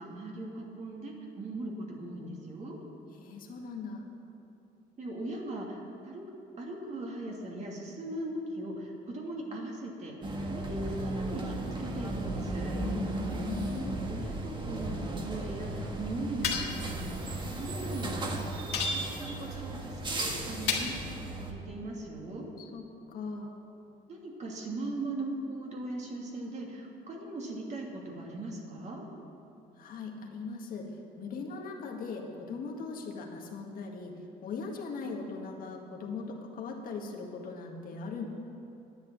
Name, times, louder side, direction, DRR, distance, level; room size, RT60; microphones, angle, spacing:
voice 1, 0.0-2.8 5.0-6.2 6.6-12.8 14.1-18.4 18.8-20.9 21.3-22.5 24.1-29.0, right 2 dB, 45° right, -1 dB, 2.6 m, -39 dB
voice 2, 3.2-4.0 12.8-14.0 22.6-23.5 29.8-38.2, left 4 dB, 55° left, 0 dB, 1.9 m, -40 dB
sound 1, 10.2-21.5, right 2 dB, 30° right, 1.6 m, -35 dB
sound 2, 16.4-16.9 18.7-19.3 20.7-21.1, left 6 dB, 80° left, 1.8 m, -32 dB
10.5 x 9.7 x 7.6 m, 3.0 s
cardioid pair, 110°, 17 cm